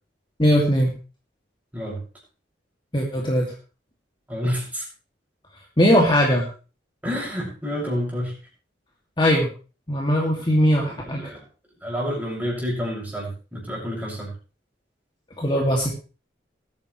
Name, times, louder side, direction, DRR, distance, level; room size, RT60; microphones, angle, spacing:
voice 1, 0.4-0.9 2.9-3.4 5.8-6.4 9.2-9.5 9.9-11.2 15.4-15.9, equal, 25° left, -1 dB, 2.4 m, -19 dB
voice 2, 4.3-4.9 7.0-8.3 10.8-11.4 11.8-14.3, equal, 10° right, -3 dB, 6.3 m, -29 dB
20.5 x 9.4 x 3.2 m, 0.35 s
head